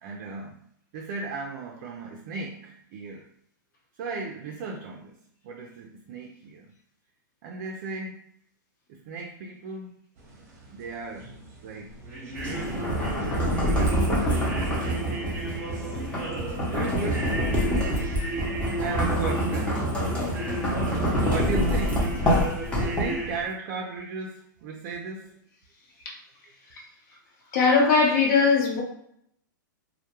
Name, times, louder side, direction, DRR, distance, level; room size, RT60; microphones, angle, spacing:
voice 1, 0.0-0.6 0.9-3.3 4.0-5.2 5.4-6.7 7.4-8.2 8.9-9.9 10.7-11.4 11.6-12.2 12.4-12.8 13.7-15.6 16.7-17.3 18.8-20.0 21.2-22.1 22.8-25.4, right 4 dB, 45° right, 1 dB, 0.4 m, -36 dB
sound 1, 10.2-23.4, right 1 dB, 25° right, 0.7 m, -35 dB
sound 2, 12.4-23.3, equal, 10° left, 0.7 m, -26 dB
voice 2, 27.5-28.8, left 4 dB, 55° left, -1 dB, 0.9 m, -20 dB
2.2 x 2.1 x 2.9 m, 0.70 s
hypercardioid pair, 135°, 11 cm